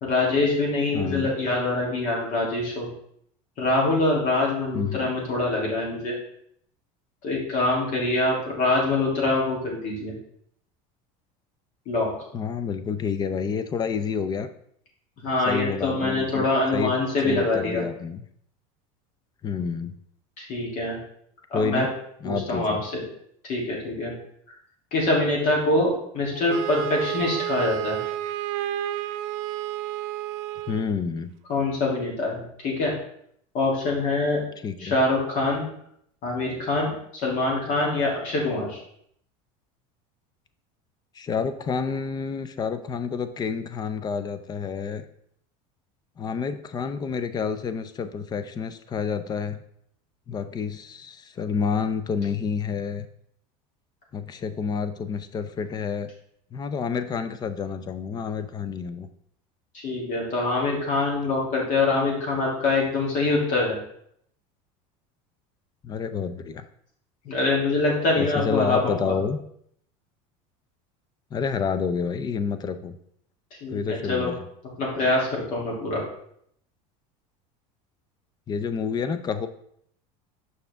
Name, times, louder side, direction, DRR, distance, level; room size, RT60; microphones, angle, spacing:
voice 1, 0.0-2.9 3.6-6.1 7.2-10.1 11.9-12.1 15.2-17.8 20.4-21.0 21.5-21.9 22.2-23.0 23.5-24.1 24.9-28.0 31.5-32.9 33.5-34.4 34.8-35.7 36.2-36.9 37.2-38.8 59.7-63.8 67.2-69.1 73.6-74.3 74.8-76.0, left 2 dB, 50° left, -3 dB, 2.9 m, -24 dB
voice 2, 0.9-1.3 4.7-5.1 12.3-14.5 15.5-17.0 17.2-18.2 19.4-19.9 21.5-21.9 22.2-22.8 30.7-31.3 34.6-35.0 41.1-45.1 46.2-49.6 50.3-53.1 54.1-56.1 56.5-59.1 65.8-66.6 68.2-69.4 71.3-73.0 73.7-74.4 78.5-79.5, left 6 dB, 25° left, 11 dB, 0.5 m, -29 dB
Wind instrument woodwind instrument, 26.5-30.9, right 13 dB, 70° right, 0.4 m, -30 dB
6.8 x 5.5 x 3.6 m, 0.70 s
supercardioid pair, 140°, 17 cm